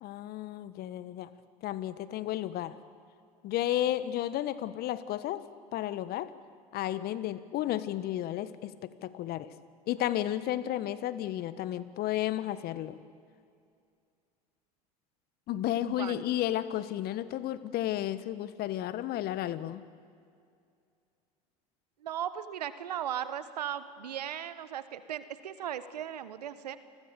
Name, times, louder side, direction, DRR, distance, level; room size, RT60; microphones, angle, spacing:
voice 1, 0.0-1.3 1.6-2.8 3.4-6.3 6.7-9.5 9.9-13.0 15.5-19.8, left 13 dB, 50° left, 14 dB, 1.3 m, -33 dB
voice 2, 15.8-16.2 22.0-26.8, right 10 dB, 85° right, 14 dB, 1.2 m, -37 dB
29.5 x 20.5 x 7.0 m, 2.4 s
hypercardioid pair, 75°, 20 cm